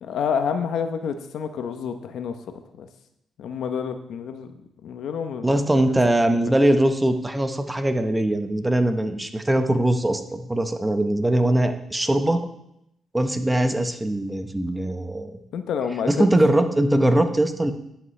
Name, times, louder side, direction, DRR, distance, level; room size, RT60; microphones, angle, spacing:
voice 1, 0.0-2.9 3.4-4.5 4.8-5.6 15.5-16.3, left 7 dB, 70° left, 8 dB, 0.8 m, -28 dB
voice 2, 5.4-12.4 13.1-15.4 16.1-17.7, right 1 dB, 10° right, 7 dB, 0.9 m, -21 dB
11.0 x 8.0 x 3.3 m, 0.80 s
cardioid pair, 90°, 0 cm